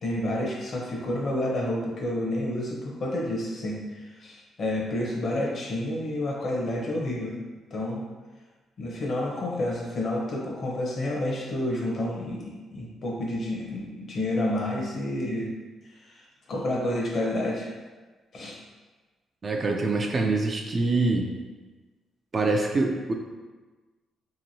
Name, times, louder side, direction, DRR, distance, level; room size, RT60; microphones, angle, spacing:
voice 1, 0.0-7.3 7.7-8.0 8.8-15.5 15.9-17.7 18.3-18.6, left 1 dB, 50° left, -2 dB, 0.7 m, -29 dB
voice 2, 19.4-21.3 22.3-23.1, right 3 dB, 35° right, 2 dB, 0.4 m, -25 dB
2.9 x 2.5 x 2.7 m, 1.3 s
cardioid pair, 90°, 0 cm